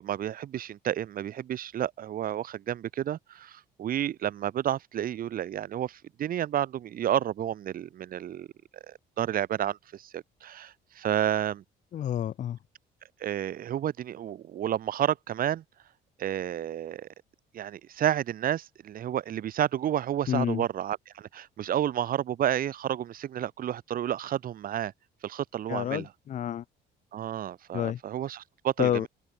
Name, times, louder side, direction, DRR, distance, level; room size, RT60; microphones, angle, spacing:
voice 1, 0.0-8.5 8.9-11.6 13.2-15.6 16.2-17.1 17.5-24.9 25.2-26.1 27.1-29.1, right 11 dB, 55° right, 3.8 m, -31 dB
voice 2, 11.9-12.6 20.3-20.6 25.7-26.6 27.7-28.0 28.8-29.1, left 10 dB, 45° left, 0.7 m, -29 dB
open air
cardioid pair, 110°, 17 cm